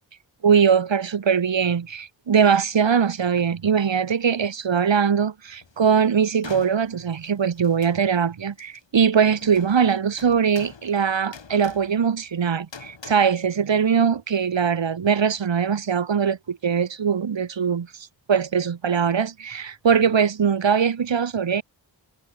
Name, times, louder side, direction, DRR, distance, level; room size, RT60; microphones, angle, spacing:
voice 1, 0.4-21.6, right 7 dB, 75° right, 1.6 m, -21 dB
sound 1, 5.6-5.8 6.4-8.3 8.6-8.8 9.3-13.1, left 5 dB, 70° left, 5.0 m, -45 dB
wide cardioid pair, 70°, 45 cm